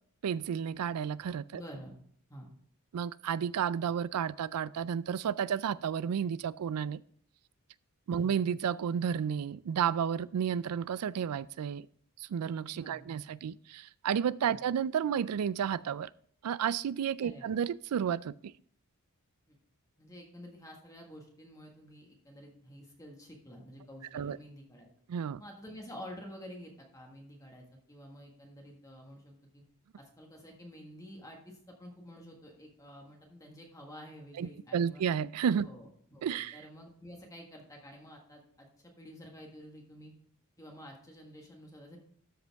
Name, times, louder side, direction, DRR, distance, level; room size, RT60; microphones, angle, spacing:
voice 1, 0.2-1.6 2.9-7.0 8.1-11.9 12.2-16.1 16.4-18.5 24.1-24.4 25.1-25.4 34.4-35.7 36.2-36.6, right 8 dB, 85° right, 0.4 m, -32 dB
voice 2, 1.5-2.0 2.3-2.5 8.1-8.4 12.7-13.1 14.4-14.6 17.2-17.5 19.5-19.6 20.0-24.9 25.4-29.6 30.0-35.0 35.6-40.1 40.6-42.0, equal, 15° left, 1.5 m, -50 dB
13.0 x 5.2 x 3.5 m
head